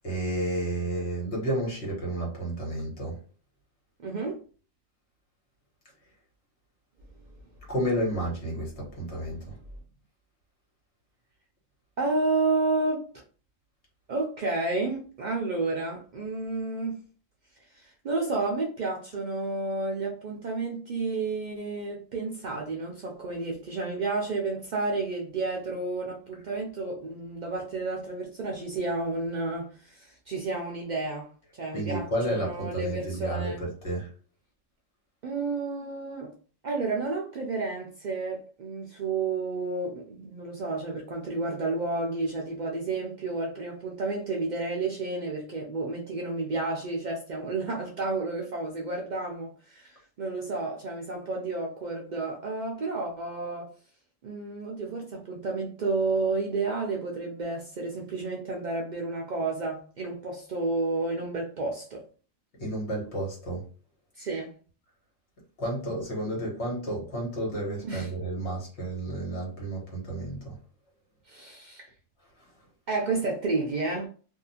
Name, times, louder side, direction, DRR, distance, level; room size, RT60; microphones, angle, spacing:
voice 1, 0.0-3.2 7.7-9.5 31.7-34.1 62.6-63.6 65.6-70.6, right 1 dB, 55° left, 1.4 m, -31 dB
voice 2, 4.0-4.4 12.0-13.0 14.1-17.0 17.7-33.6 35.2-36.3 36.6-53.7 54.2-62.0 64.2-64.5 67.8-68.1 71.3-71.9 72.9-74.1, right 3 dB, 85° right, 0.4 m, -31 dB
2.7 x 2.4 x 2.7 m
omnidirectional pair, 1.4 m